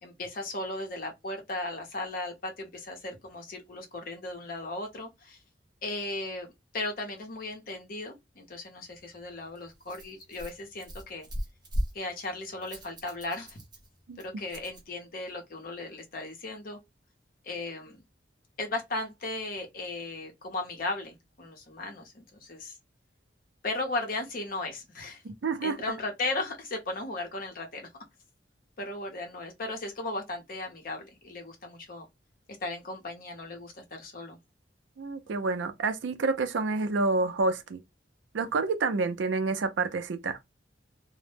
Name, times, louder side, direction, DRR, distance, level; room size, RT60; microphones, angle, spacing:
voice 1, 0.0-5.4 5.8-11.3 11.9-13.6 14.2-16.8 17.4-18.0 18.6-22.8 23.6-25.2 25.6-27.9 28.8-32.1 32.6-34.4, left 2 dB, 50° left, 0.7 m, -36 dB
Rattle, 8.9-14.9, equal, 25° right, 0.5 m, -39 dB
voice 2, 25.2-25.8 35.0-37.8 38.3-40.4, right 3 dB, 75° right, 0.4 m, -28 dB
2.0 x 2.0 x 3.1 m
head